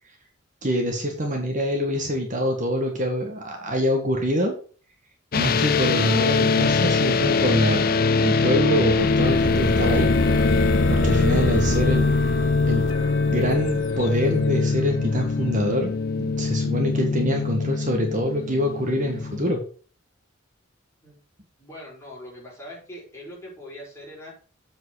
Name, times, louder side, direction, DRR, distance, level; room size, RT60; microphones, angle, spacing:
voice 1, 0.6-4.6 5.4-10.1 10.4-12.1 12.7-12.9 13.3-15.9 16.2-19.6, equal, 40° right, 2 dB, 1.8 m, -25 dB
sound 1, 5.3-19.5, left 4 dB, 50° left, 0.5 m, -23 dB
sound 2, 8.6-15.3, left 1 dB, 80° left, 1.5 m, -26 dB
voice 2, 21.6-24.3, left 1 dB, 15° left, -5 dB, 5.5 m, -41 dB
7.8 x 7.5 x 4.9 m, 0.40 s
head